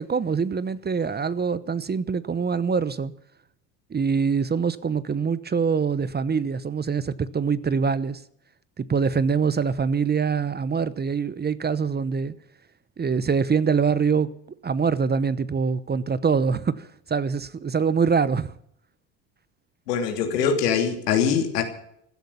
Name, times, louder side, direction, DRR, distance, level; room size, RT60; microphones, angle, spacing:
voice 1, 0.0-3.1 3.9-8.2 8.8-12.3 13.0-14.3 14.6-18.5, right 5 dB, 20° right, 0.9 m, -24 dB
voice 2, 19.9-21.6, left 7 dB, 90° left, 3.1 m, -23 dB
15.5 x 13.0 x 7.0 m
hypercardioid pair, 80°, 46 cm